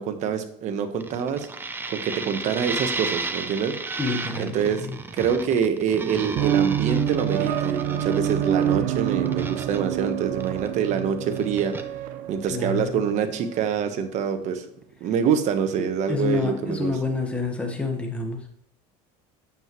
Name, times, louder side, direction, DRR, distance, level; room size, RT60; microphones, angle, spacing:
voice 1, 0.0-1.5 1.9-3.7 4.4-4.8 5.1-11.7 12.3-14.6 15.0-17.0, right 7 dB, 50° right, 8 dB, 1.2 m, -25 dB
sound 1, 1.0-11.0 11.3-11.8, right 3 dB, 15° right, 0.6 m, -33 dB
voice 2, 4.0-5.0 12.5-13.0 15.8-18.4, left 3 dB, 10° left, 3 dB, 1.3 m, -28 dB
sound 2, 6.4-13.7, right 10 dB, 65° right, 0.7 m, -27 dB
8.8 x 7.6 x 3.1 m, 0.70 s
cardioid pair, 130°, 15 cm